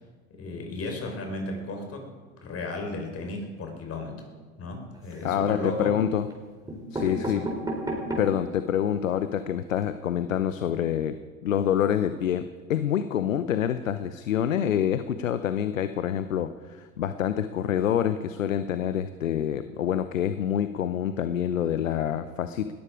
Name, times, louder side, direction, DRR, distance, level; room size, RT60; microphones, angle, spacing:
voice 1, 0.3-2.1 2.4-4.3 4.6-6.0 6.7-7.5, left 2 dB, 40° left, 3 dB, 4.6 m, -35 dB
sound 1, 4.9-5.6 6.3-6.4 6.7-8.5 9.0-9.1 9.3-9.4 9.7-9.8, right 1 dB, 10° right, 4.7 m, -33 dB
voice 2, 5.2-6.3 6.9-7.4 8.2-22.7, left 9 dB, 90° left, 12 dB, 0.8 m, -27 dB
20.5 x 14.0 x 5.0 m, 1.4 s
hypercardioid pair, 80°, 38 cm